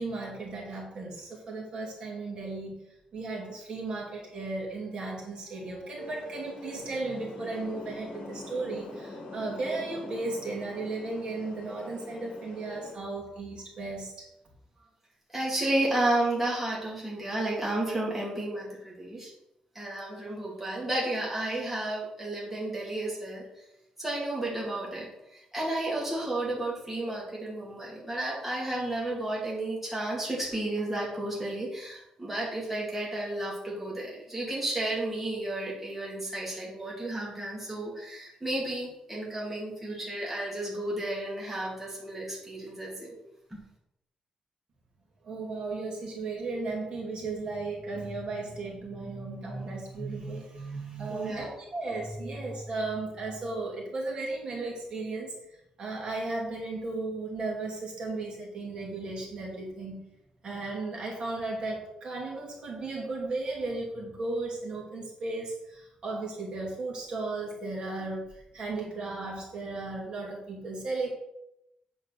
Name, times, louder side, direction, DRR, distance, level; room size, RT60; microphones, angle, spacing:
voice 1, 0.0-2.8 3.1-14.3 45.2-55.3 55.8-60.0 60.4-71.1, right 3 dB, 45° right, -2 dB, 2.7 m, -35 dB
sound 1, 6.0-12.9, left 2 dB, 60° left, 2.3 m, -43 dB
voice 2, 15.3-19.3 19.7-23.4 24.0-43.2 43.5-43.6 51.1-51.5, right 1 dB, 10° right, -6 dB, 2.4 m, -32 dB
8.4 x 5.4 x 6.5 m, 0.84 s
wide cardioid pair, 180°, 2 cm